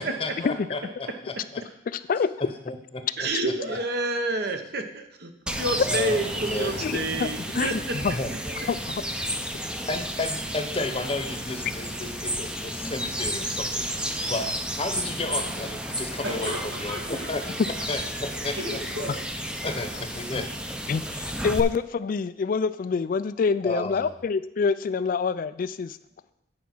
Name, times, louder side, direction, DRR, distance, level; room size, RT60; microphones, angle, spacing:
voice 1, 0.0-1.6 2.7-3.3 5.8-6.9 8.1-8.3 9.9-17.4 17.9-18.6 19.6-20.5 23.6-24.1, left 2 dB, 30° left, 6 dB, 0.9 m, -33 dB
voice 2, 1.9-2.3 6.8-7.3 7.5-8.1 8.7-8.8 20.9-26.0, left 5 dB, 45° left, 15 dB, 0.3 m, -26 dB
voice 3, 3.2-7.9, right 2 dB, 55° right, 6 dB, 1.0 m, -29 dB
sound 1, 5.5-21.6, equal, 5° right, 0.5 m, -32 dB
voice 4, 16.2-17.8 18.5-19.2, right 1 dB, 85° right, -2 dB, 2.7 m, -36 dB
9.3 x 4.9 x 6.0 m, 0.77 s
head